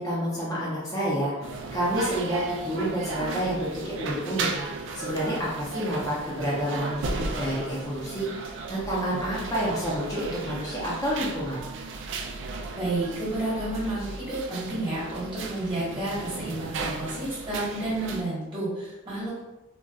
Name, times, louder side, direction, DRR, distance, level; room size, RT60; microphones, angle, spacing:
voice 1, 0.0-4.5 4.9-11.6, equal, 15° left, -7 dB, 0.6 m, -29 dB
sound 1, 1.4-18.2, right 3 dB, 55° right, 0.3 m, -35 dB
voice 2, 12.7-19.4, right 2 dB, 20° right, -8 dB, 1.2 m, -31 dB
3.9 x 2.2 x 2.3 m, 1.1 s
head